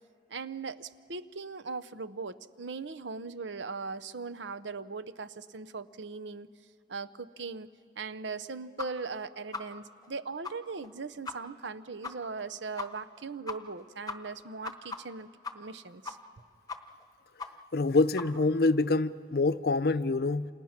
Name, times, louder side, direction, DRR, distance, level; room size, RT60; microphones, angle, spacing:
voice 1, 0.3-6.5 6.9-7.7 8.0-15.3 15.5-16.2, right 4 dB, 85° right, 0.8 m, -39 dB
sound 1, 8.8-8.9 9.1-9.2 9.5-9.6 10.0-10.1 10.4-10.5 10.8-10.9 11.2-11.3 11.6-11.7 12.0-12.1 12.4-12.5 12.8-12.9 13.2-13.3 13.5-13.8 14.1-15.8 16.0-16.4 16.7-17.0 17.4-17.5 17.8-17.9 18.2-18.3, left 4 dB, 20° left, 0.9 m, -38 dB
voice 2, 17.7-20.5, left 3 dB, 55° left, 0.5 m, -26 dB
29.0 x 27.5 x 5.9 m
head